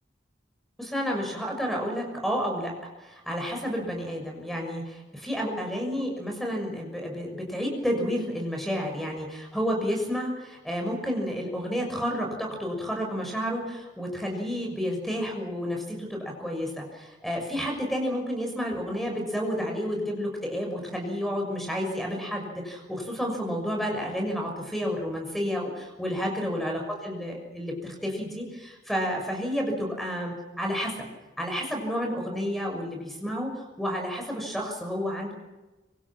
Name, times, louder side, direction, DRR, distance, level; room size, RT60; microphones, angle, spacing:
voice 1, 0.8-2.7 3.0-30.9 31.4-35.3, equal, ahead, 1 dB, 6.5 m, -30 dB
26.0 x 25.0 x 6.2 m, 1.1 s
head